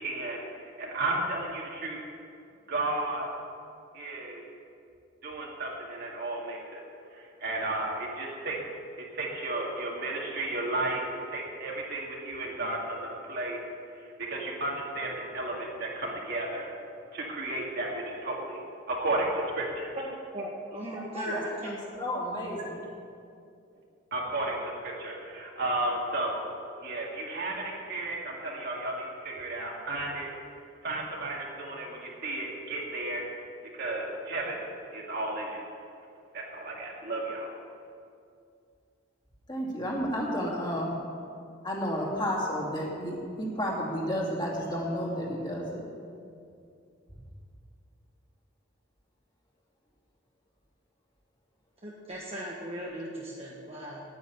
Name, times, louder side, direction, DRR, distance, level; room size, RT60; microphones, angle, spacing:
voice 1, 0.0-2.0 2.7-3.3 3.9-4.4 5.2-6.8 7.1-8.6 9.0-13.6 14.0-16.7 17.1-18.6 18.9-20.0 24.1-26.4 26.8-30.3 30.8-33.2 33.7-34.7 34.9-35.6 36.3-37.5, right 2 dB, 50° right, -2 dB, 2.2 m, -33 dB
voice 2, 20.3-21.8 51.8-54.0, equal, 30° right, -4 dB, 1.2 m, -37 dB
voice 3, 21.1-22.8 39.5-41.0 41.6-45.9, equal, 20° left, -3 dB, 2.5 m, -32 dB
9.5 x 9.2 x 9.1 m, 2.4 s
head